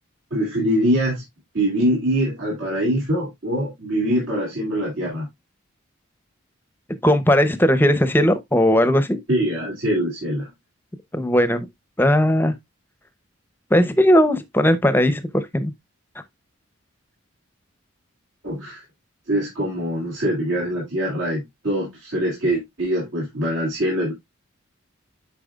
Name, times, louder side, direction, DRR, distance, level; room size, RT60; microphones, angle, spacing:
voice 1, 0.3-1.2 1.5-5.3 9.3-10.5 18.4-18.8 19.3-24.1, equal, 65° right, 2.8 m, -23 dB
voice 2, 7.0-9.2 11.1-11.7 12.0-12.5 13.7-15.7, equal, 10° left, 0.7 m, -18 dB
8.9 x 5.8 x 2.4 m
head